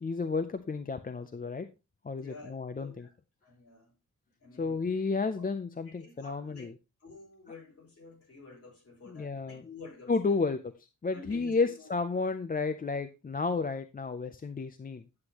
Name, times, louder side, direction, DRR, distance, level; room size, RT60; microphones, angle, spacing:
voice 1, 0.0-1.7 2.0-3.1 4.6-6.7 9.1-9.6 10.1-10.6 11.0-15.0, left 4 dB, 30° left, 0.4 m, -32 dB
voice 2, 2.2-3.1 3.4-3.9 4.4-4.9 5.4-5.5 5.8-6.7 7.0-10.4 11.1-12.3, left 4 dB, 45° left, 4.2 m, -50 dB
9.6 x 8.0 x 2.9 m
wide cardioid pair, 170°, 32 cm